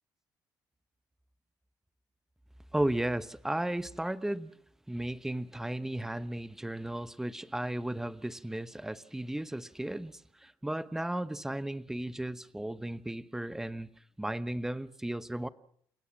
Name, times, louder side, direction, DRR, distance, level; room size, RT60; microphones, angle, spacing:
voice 1, 2.7-4.5 4.9-13.9 14.2-15.5, right 1 dB, 5° right, 0.9 m, -35 dB
29.0 x 17.0 x 7.4 m
cardioid pair, 130°, 8 cm